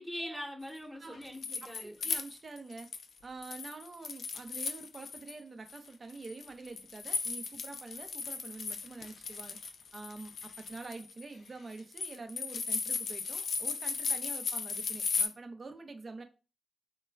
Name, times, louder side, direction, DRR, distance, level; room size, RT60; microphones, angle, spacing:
voice 1, 0.0-2.0, equal, 10° right, 0.9 m, -42 dB
sound 1, 1.0-3.1 3.4-5.3 5.7-15.3, left 4 dB, 75° left, 0.3 m, -36 dB
voice 2, 1.6-2.9 3.2-9.6 9.9-16.2, right 3 dB, 50° right, 0.5 m, -46 dB
3.2 x 2.3 x 2.3 m
supercardioid pair, 40°, 0 cm